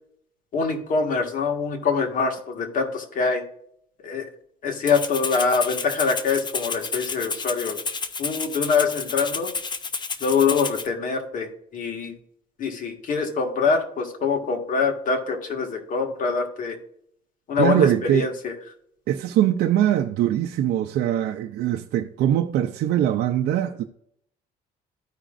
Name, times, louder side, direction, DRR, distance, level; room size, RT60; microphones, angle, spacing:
voice 1, 0.5-3.4 4.0-4.3 4.6-7.8 8.2-9.5 10.2-12.1 12.6-16.8 17.5-17.9 18.1-18.5, left 5 dB, 50° left, 1.9 m, -24 dB
Rattle (instrument), 4.9-10.9, left 4 dB, 25° left, 0.7 m, -31 dB
voice 2, 17.6-18.3 19.1-23.8, right 11 dB, 70° right, 0.6 m, -22 dB
14.0 x 5.0 x 2.5 m
cardioid pair, 110°, 17 cm